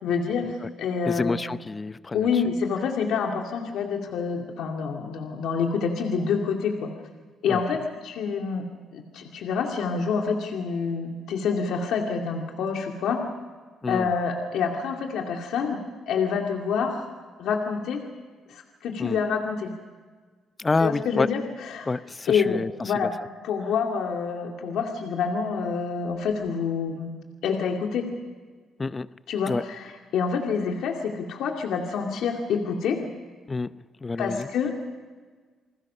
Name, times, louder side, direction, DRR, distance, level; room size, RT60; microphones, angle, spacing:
voice 1, 0.0-1.3 2.1-6.9 7.4-8.6 8.9-13.2 13.9-17.1 17.4-18.0 18.5-19.7 20.8-21.9 22.3-23.1 23.4-27.1 27.4-28.1 29.3-33.0 34.2-34.7, left 6 dB, 80° left, 2 dB, 2.3 m, -27 dB
voice 2, 1.1-2.3 7.5-7.6 13.8-14.1 19.0-19.2 20.6-21.3 21.9-22.7 23.0-23.1 28.8-29.1 29.5-29.6 33.5-33.7 34.0-34.5, left 3 dB, 25° left, 15 dB, 0.7 m, -27 dB
29.0 x 20.5 x 5.6 m, 1.5 s
cardioid pair, 90°, 0 cm